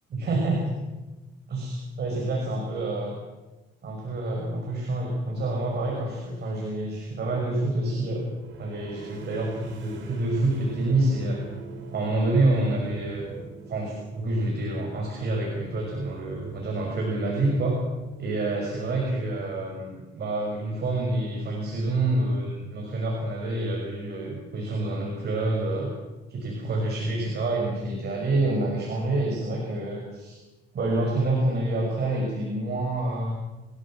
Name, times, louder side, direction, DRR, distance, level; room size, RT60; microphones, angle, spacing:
voice 1, 0.1-0.7 1.5-3.2 3.8-8.3 8.6-11.4 11.9-13.4 13.7-17.8 18.2-25.9 26.3-30.4 30.7-33.4, right 2 dB, 55° right, 0 dB, 6.3 m, -27 dB
sound 1, 8.3-19.8, right 6 dB, 75° right, 4.0 m, -46 dB
29.0 x 14.5 x 7.6 m, 1.1 s
cardioid pair, 90°, 20 cm